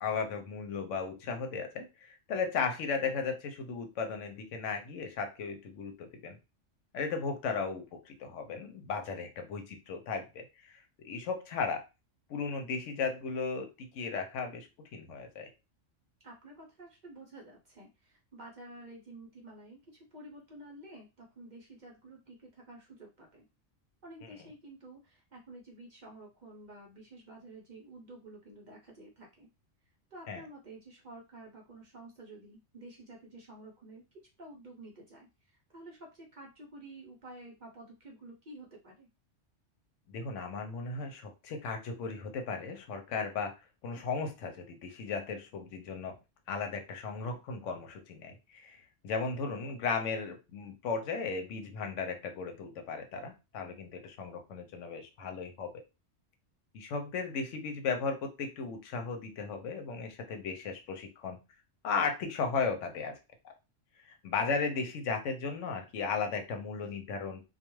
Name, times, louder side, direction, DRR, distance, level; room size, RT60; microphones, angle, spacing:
voice 1, 0.0-6.4 6.9-11.9 12.3-15.5 30.3-30.4 40.1-43.5 43.8-46.1 46.5-55.8 56.7-61.4 61.8-63.1 64.0-67.4, left 5 dB, 85° left, 5 dB, 0.9 m, -36 dB
voice 2, 16.2-23.5 24.0-29.5 30.1-34.0 34.4-39.1, right 2 dB, 50° right, -1 dB, 0.6 m, -51 dB
2.3 x 2.2 x 3.0 m, 0.27 s
omnidirectional pair, 1.3 m